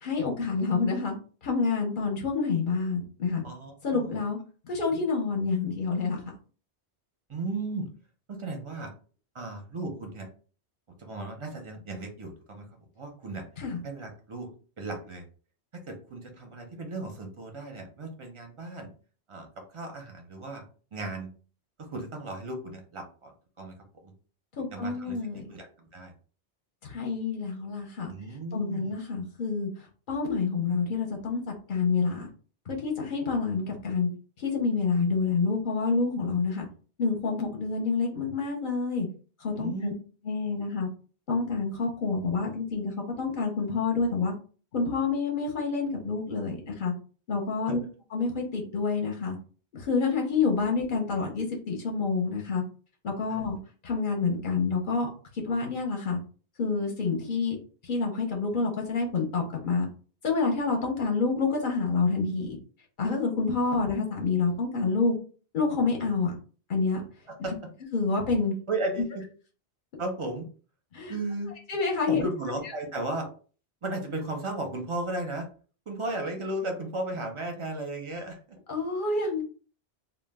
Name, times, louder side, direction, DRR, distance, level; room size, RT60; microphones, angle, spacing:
voice 1, 0.0-1.1 1.4-3.4 3.8-4.4 4.7-6.2 13.6-13.8 24.6-25.4 26.9-28.1 28.5-29.7 30.1-32.3 32.7-34.1 34.4-36.7 37.0-39.1 39.4-39.9 40.3-40.9 41.3-42.9 43.2-44.3 44.7-46.9 47.3-47.8 48.1-49.4 49.7-52.6 53.0-53.6 53.8-55.1 55.4-56.2 56.6-57.6 57.8-59.9 60.2-62.6 63.0-65.2 65.5-66.3 66.7-67.0 67.9-68.5 70.9-71.1 71.7-72.2 78.7-79.4, left 4 dB, 55° left, 0 dB, 0.7 m, -28 dB
voice 2, 3.4-4.2 4.9-5.0 7.3-7.9 8.3-8.9 9.3-10.3 11.0-12.7 13.0-13.4 13.8-14.5 14.8-15.2 15.9-18.9 19.3-20.6 20.9-21.3 21.8-23.7 24.0-24.1 24.7-25.2 25.5-26.1 28.1-28.9 39.6-39.9 47.7-47.8 53.3-53.4 67.3-67.5 68.7-69.2 70.0-70.5 71.1-71.6 72.1-73.3 73.8-75.5 75.9-78.6, right 2 dB, 40° right, 3 dB, 0.5 m, -35 dB
2.2 x 2.1 x 3.3 m, 0.39 s
omnidirectional pair, 1.1 m